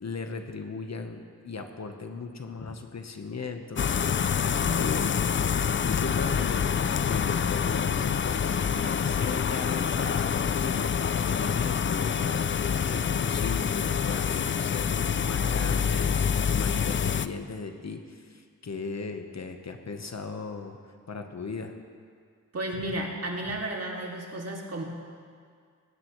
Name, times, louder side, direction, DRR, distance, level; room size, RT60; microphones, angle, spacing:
voice 1, 0.0-20.8 21.1-21.8 22.8-22.9 23.5-23.6, left 4 dB, 55° left, 5 dB, 1.1 m, -37 dB
sound 1, 3.8-17.3, left 7 dB, 40° left, 0.4 m, -26 dB
voice 2, 22.5-24.8, right 1 dB, 50° right, -1 dB, 2.3 m, -33 dB
18.0 x 15.0 x 3.1 m, 2.1 s
wide cardioid pair, 70°, 33 cm